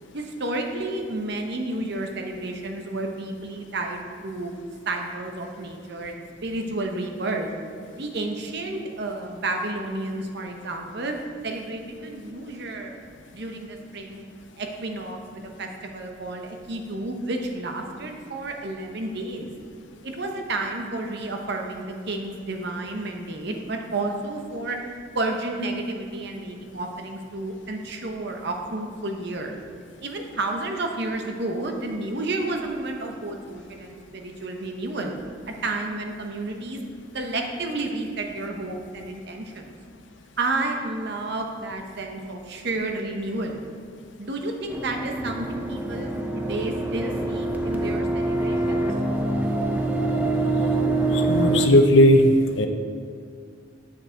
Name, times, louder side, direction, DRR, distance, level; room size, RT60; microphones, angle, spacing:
voice 1, 0.1-4.5 4.9-7.5 8.0-11.1 11.4-12.9 13.3-14.3 14.6-19.5 20.0-24.8 25.1-29.5 30.0-35.1 35.6-36.8 37.1-39.7 40.4-43.6 44.2-48.9, right 2 dB, 60° right, 3 dB, 0.9 m, -31 dB
sound 1, 44.7-51.7, right 2 dB, 10° right, 0.6 m, -25 dB
voice 2, 51.1-52.2 52.6-52.7, left 1 dB, 70° left, 5 dB, 0.7 m, -16 dB
8.8 x 6.4 x 4.5 m, 2.2 s
head